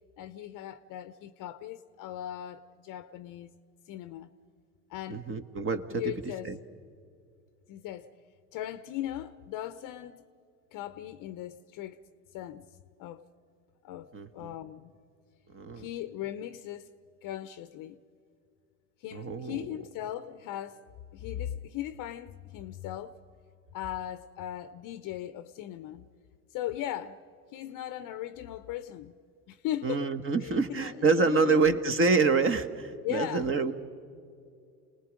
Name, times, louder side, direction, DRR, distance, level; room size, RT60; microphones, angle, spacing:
voice 1, 0.2-3.5 3.9-4.3 4.9-5.3 5.9-6.5 7.7-8.1 8.5-10.3 10.7-12.0 12.3-12.7 13.0-13.2 13.8-14.1 14.3-14.9 15.7-16.9 17.2-18.0 19.0-20.8 21.1-23.2 23.7-26.1 26.5-27.2 27.5-29.1 29.5-30.1 30.3-31.8 33.0-33.5, left 12 dB, 45° left, 0.8 m, -38 dB
voice 2, 5.1-6.1 6.4-6.6 14.1-14.5 15.5-15.8 19.1-19.6 29.8-33.7, right 4 dB, 25° right, 1.2 m, -27 dB
28.0 x 19.5 x 5.2 m
hypercardioid pair, 85°, 46 cm